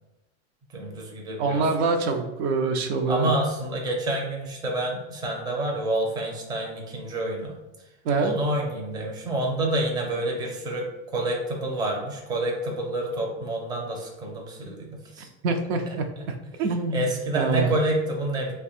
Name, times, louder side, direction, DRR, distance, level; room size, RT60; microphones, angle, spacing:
voice 1, 0.7-1.6 3.1-7.6 8.2-15.3 16.9-18.5, right 1 dB, 10° right, 0 dB, 0.5 m, -28 dB
voice 2, 1.4-3.3 8.0-8.4 15.4-17.7, right 4 dB, 70° right, 5 dB, 0.6 m, -25 dB
2.7 x 2.2 x 4.1 m, 1.1 s
supercardioid pair, 140°, 33 cm